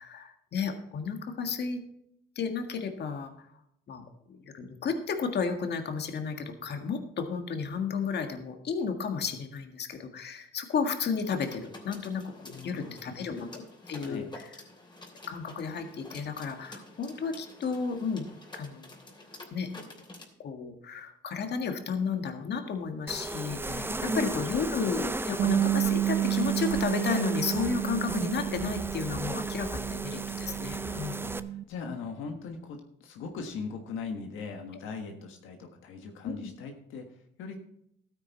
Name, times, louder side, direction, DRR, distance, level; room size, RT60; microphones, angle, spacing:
voice 1, 0.0-1.8 2.4-3.5 3.9-14.4 15.3-18.3 18.5-18.9 19.5-19.7 20.4-31.4 32.3-32.4 36.2-36.5, left 5 dB, 55° left, 5 dB, 1.7 m, -33 dB
sound 1, 11.2-20.3, left 2 dB, 20° left, 3.1 m, -49 dB
voice 2, 12.4-13.0 14.0-14.3 23.6-24.4 30.5-37.6, left 5 dB, 85° left, 4 dB, 1.5 m, -41 dB
sound 2, 23.1-31.4, right 2 dB, 10° right, 0.6 m, -35 dB
Bass guitar, 25.4-31.6, right 12 dB, 70° right, 0.7 m, -31 dB
13.0 x 9.2 x 4.1 m, 0.73 s
cardioid pair, 90°, 20 cm